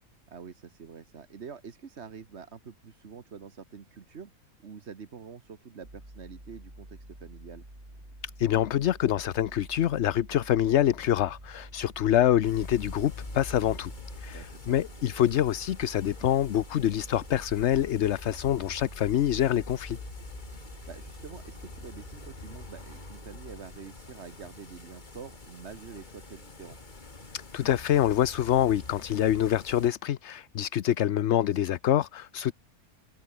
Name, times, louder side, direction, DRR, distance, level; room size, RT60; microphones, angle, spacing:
voice 1, 0.3-4.3 4.6-7.6 14.3-14.8 20.8-26.8, right 6 dB, 50° right, 1.6 m, -46 dB
sound 1, 5.8-23.6, right 1 dB, 30° right, 7.6 m, -48 dB
voice 2, 8.4-13.9 14.2-20.0 27.3-32.5, left 11 dB, 60° left, 0.9 m, -26 dB
sound 2, 10.5-17.4, equal, 5° left, 5.7 m, -61 dB
sound 3, 12.4-29.9, left 3 dB, 35° left, 2.3 m, -45 dB
omnidirectional pair, 1.5 m